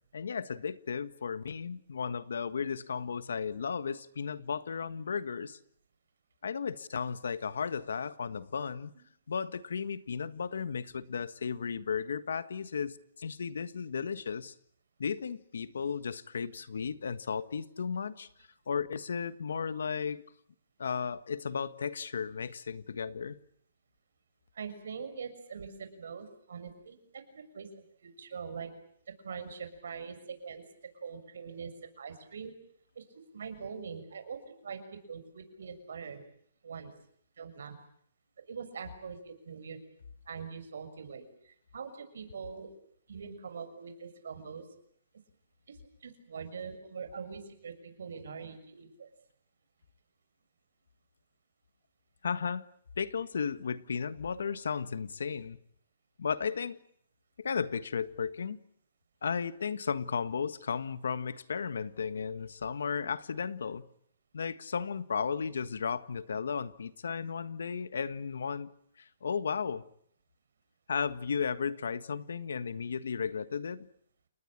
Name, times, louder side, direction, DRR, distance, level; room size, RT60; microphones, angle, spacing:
voice 1, 0.1-5.6 6.4-8.9 9.3-14.5 15.0-18.3 18.7-20.2 20.8-23.4 52.2-52.6 53.0-55.6 56.2-56.8 57.4-58.6 59.2-63.8 64.3-68.7 69.0-69.8 70.9-73.9, left 6 dB, 90° left, 14 dB, 1.5 m, -34 dB
voice 2, 24.5-28.7 29.2-30.6 31.0-31.7 32.0-32.5 32.9-33.0 33.3-34.8 35.1-36.2 36.6-36.9 37.4-37.7 38.5-39.8 40.3-42.7 43.1-44.6 45.7-49.1, right 6 dB, 80° right, 8 dB, 6.7 m, -43 dB
29.5 x 20.0 x 8.9 m, 0.67 s
hypercardioid pair, 160°, 0 cm